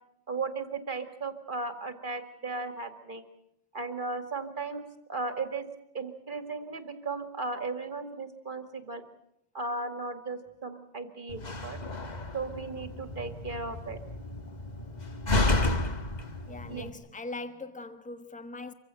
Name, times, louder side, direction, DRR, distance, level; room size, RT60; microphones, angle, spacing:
voice 1, 0.3-3.2 3.7-5.7 5.9-9.0 9.5-11.8 12.3-14.0 16.7-16.9, right 3 dB, 40° right, 2.3 m, -36 dB
Slam, 11.3-16.9, left 2 dB, 35° left, 1.5 m, -31 dB
voice 2, 16.5-18.7, left 2 dB, 5° left, 1.1 m, -41 dB
25.5 x 16.0 x 9.1 m
omnidirectional pair, 1.3 m